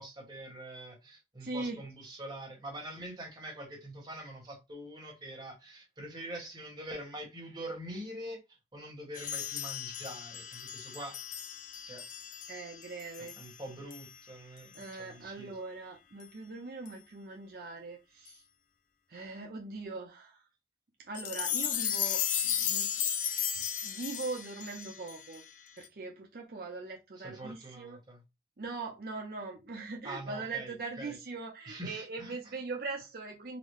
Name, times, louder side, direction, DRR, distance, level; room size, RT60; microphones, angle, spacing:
voice 1, 0.0-11.2 11.9-12.0 13.2-15.5 27.2-28.2 30.0-31.2 31.7-32.4, right 1 dB, 25° right, 1.2 m, -44 dB
voice 2, 1.4-1.8 12.5-13.4 14.7-18.4 19.1-20.4 21.0-22.9 23.3-23.5 23.8-25.4 25.8-28.0 28.6-33.6, right 3 dB, 55° right, 0.5 m, -41 dB
sound 1, 9.1-13.6 13.9-14.1 14.7-14.9 16.2-16.3 16.9-17.0 18.3-18.4 21.1-25.9, left 9 dB, 45° left, 0.4 m, -35 dB
3.9 x 2.0 x 3.2 m
head